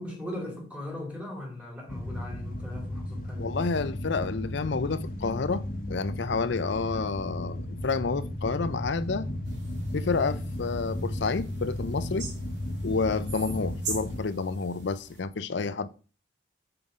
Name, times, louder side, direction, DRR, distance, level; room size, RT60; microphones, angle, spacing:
voice 1, 0.0-3.5, left 1 dB, 5° right, 2.6 m, -39 dB
sound 1, 1.9-14.2, left 1 dB, 45° left, 1.0 m, -35 dB
voice 2, 3.4-9.3 9.9-12.3 12.8-15.9, left 4 dB, 75° left, 0.6 m, -29 dB
sound 2, 9.5-15.2, right 3 dB, 70° right, 2.0 m, -42 dB
5.7 x 5.5 x 4.9 m
head